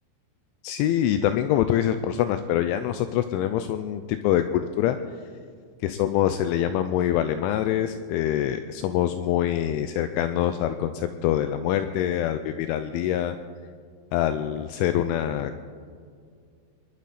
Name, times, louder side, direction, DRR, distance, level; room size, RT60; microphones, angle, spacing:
voice 1, 0.6-5.0 5.8-13.4 14.1-15.5, left 11 dB, 85° left, 9 dB, 2.8 m, -25 dB
27.0 x 12.0 x 4.2 m, 2.2 s
omnidirectional pair, 6.0 m